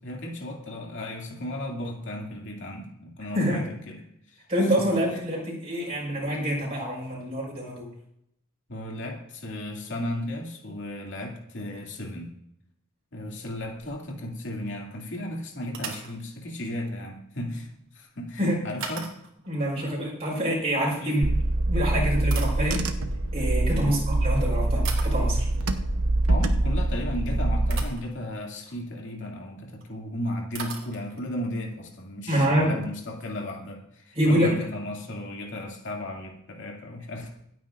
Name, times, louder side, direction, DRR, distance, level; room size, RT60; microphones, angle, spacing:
voice 1, 0.0-4.4 4.8-5.2 8.7-12.3 13.1-19.1 21.0-21.3 23.7-24.0 26.3-37.3, left 1 dB, 55° left, 0 dB, 2.5 m, -35 dB
voice 2, 4.5-7.9 18.4-18.6 19.5-21.2 21.7-22.8 23.3-25.5 32.3-32.7 34.2-34.5, equal, 30° right, -4 dB, 5.3 m, -26 dB
sound 1, 13.2-14.3 14.6-14.8 15.7-16.2 18.8-19.5 21.2-21.4 22.0-23.2 24.1-24.3 24.8-25.3 27.1-27.2 27.7-28.1 28.6-28.9 29.8-29.9 30.1-30.2 30.5-31.3, right 5 dB, 60° right, 2.7 m, -39 dB
Car / Engine, 21.2-27.8, right 2 dB, 85° right, 1.0 m, -24 dB
25.5 x 9.2 x 2.5 m, 0.74 s
head